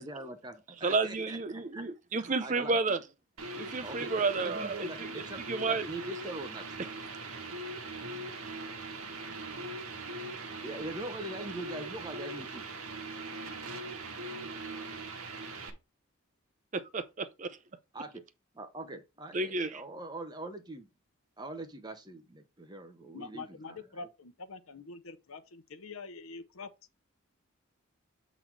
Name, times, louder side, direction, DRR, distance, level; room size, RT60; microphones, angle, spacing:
voice 1, 0.0-1.8 2.2-2.7 3.8-6.6 10.6-12.6 17.9-18.2 18.5-20.9 21.4-23.8, right 2 dB, 20° right, 0.9 m, -42 dB
voice 2, 0.8-3.0 3.6-5.1 5.5-5.9 16.7-17.5 19.3-19.8, right 3 dB, 35° right, 0.5 m, -31 dB
sound 1, 3.4-15.7, right 2 dB, 80° right, 1.5 m, -41 dB
voice 3, 23.1-26.7, left 4 dB, 70° left, 0.8 m, -45 dB
7.6 x 4.0 x 4.6 m
head